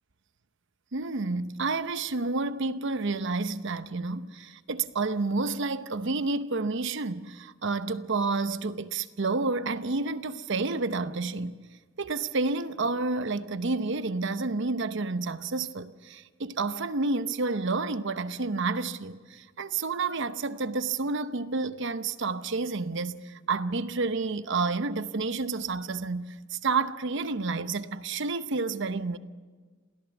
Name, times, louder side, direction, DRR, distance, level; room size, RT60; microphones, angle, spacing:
voice 1, 0.9-11.5 12.0-29.2, right 3 dB, 60° right, 0.8 m, -30 dB
27.5 x 17.0 x 7.2 m
head